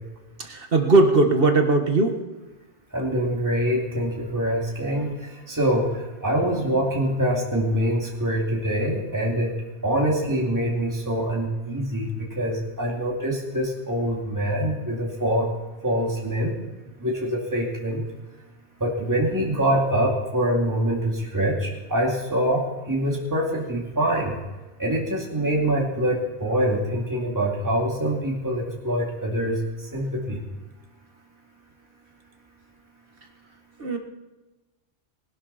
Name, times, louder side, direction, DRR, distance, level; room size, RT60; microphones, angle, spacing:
voice 1, 0.4-2.1 33.8-34.0, right 3 dB, 50° right, 4 dB, 1.8 m, -19 dB
voice 2, 2.9-9.5 9.8-12.1 12.4-15.5 15.8-16.5 17.0-18.0 18.8-24.3 24.8-29.6 29.9-30.4, right 1 dB, 15° right, -2 dB, 2.6 m, -24 dB
20.0 x 12.0 x 4.2 m, 1.1 s
omnidirectional pair, 1.2 m